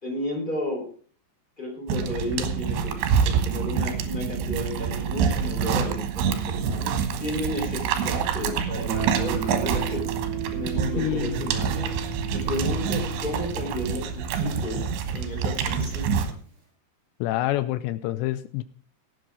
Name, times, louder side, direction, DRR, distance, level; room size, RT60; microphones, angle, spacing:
voice 1, 0.0-0.8 1.6-2.9 3.2-6.9 7.2-10.0 10.5-11.9 12.3-14.8 15.1-16.2, left 1 dB, 10° left, 0 dB, 4.1 m, -32 dB
sound 1, 1.9-16.3, right 7 dB, 80° right, 3.6 m, -27 dB
Guitar, 8.9-15.6, right 7 dB, 60° right, 6.6 m, -35 dB
voice 2, 11.0-11.5 17.2-18.6, left 15 dB, 85° left, 14 dB, 2.9 m, -27 dB
17.5 x 7.8 x 4.8 m, 0.43 s
omnidirectional pair, 4.9 m